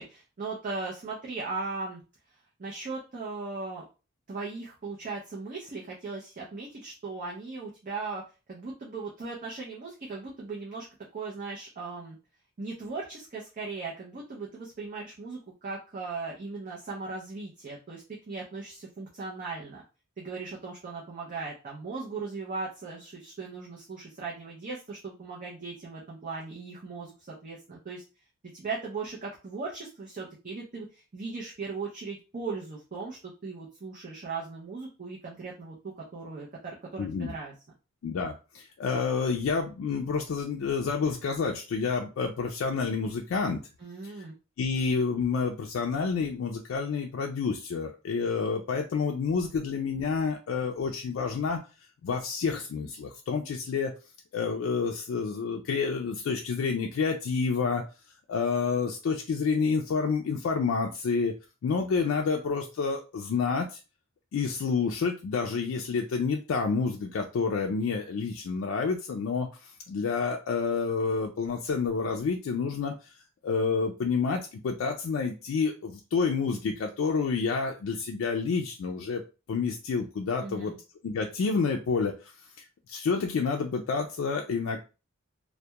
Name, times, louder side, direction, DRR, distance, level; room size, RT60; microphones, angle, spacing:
voice 1, 0.0-2.0 2.6-3.8 4.3-8.2 8.5-10.9 11.1-12.2 12.6-19.8 20.2-28.0 28.5-37.5 43.8-44.3 80.4-80.8, right 4 dB, 40° right, -3 dB, 0.5 m, -38 dB
voice 2, 37.0-37.3 38.0-43.6 44.0-44.1 44.6-51.6 52.0-53.9 54.3-57.8 58.3-61.3 61.6-63.8 64.3-73.1 73.4-79.2 79.5-80.7 81.0-82.3 82.6-84.8, left 5 dB, 70° left, 2 dB, 0.3 m, -29 dB
2.2 x 2.1 x 2.8 m, 0.31 s
head